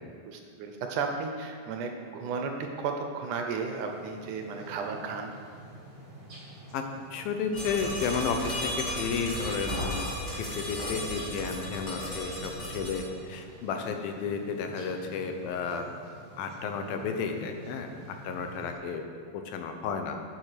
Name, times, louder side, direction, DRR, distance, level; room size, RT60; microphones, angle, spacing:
voice 1, 0.0-5.3, right 5 dB, 75° right, 4 dB, 2.1 m, -34 dB
sound 1, 3.7-18.7, right 1 dB, 25° right, 3.0 m, -49 dB
voice 2, 7.1-10.1 10.4-15.8 16.4-17.9 18.2-19.0 19.3-20.2, left 5 dB, 90° left, 5 dB, 2.8 m, -32 dB
sound 2, 7.5-13.0, equal, 25° left, 2.2 m, -34 dB
8.6 x 8.6 x 6.6 m, 2.3 s
omnidirectional pair, 4.0 m